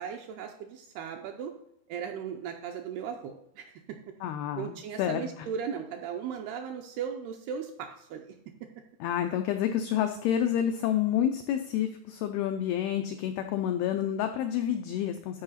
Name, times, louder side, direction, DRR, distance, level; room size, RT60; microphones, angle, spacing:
voice 1, 0.0-1.5 1.9-4.0 4.6-8.4, right 7 dB, 80° right, 4 dB, 2.4 m, -37 dB
voice 2, 4.2-5.5 9.0-15.4, left 10 dB, 85° left, 6 dB, 2.2 m, -29 dB
12.0 x 4.9 x 4.1 m, 0.77 s
omnidirectional pair, 5.2 m